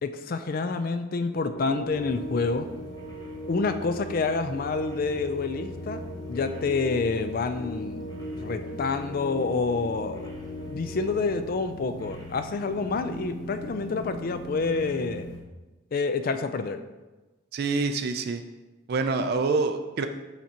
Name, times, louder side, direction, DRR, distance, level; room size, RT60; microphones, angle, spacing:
voice 1, 0.0-2.7 3.5-6.0 6.3-10.2 10.7-15.3 15.9-16.8, left 4 dB, 45° left, 9 dB, 0.4 m, -28 dB
sound 1, 1.3-11.2, equal, 75° left, 1.7 m, -39 dB
sound 2, 1.9-15.4, left 1 dB, 20° left, 1.0 m, -42 dB
voice 2, 17.5-18.4 18.9-20.1, right 3 dB, 50° right, 7 dB, 0.3 m, -26 dB
5.9 x 5.7 x 2.8 m, 1.1 s
head